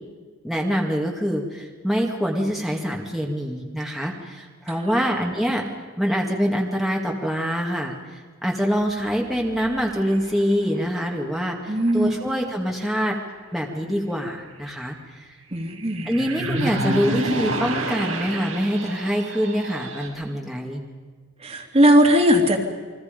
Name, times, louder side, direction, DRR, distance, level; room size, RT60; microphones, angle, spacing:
voice 1, 0.4-5.7 6.0-13.2 13.5-15.3 16.0-20.8, equal, ahead, -1 dB, 2.1 m, -25 dB
sound 1, 9.5-11.3 11.6-12.5 15.5-20.1, right 1 dB, 80° right, 5.6 m, -30 dB
voice 2, 11.7-12.2 15.5-16.1 21.4-22.6, equal, 30° right, 2 dB, 2.5 m, -18 dB
29.0 x 23.0 x 5.3 m, 1.5 s
head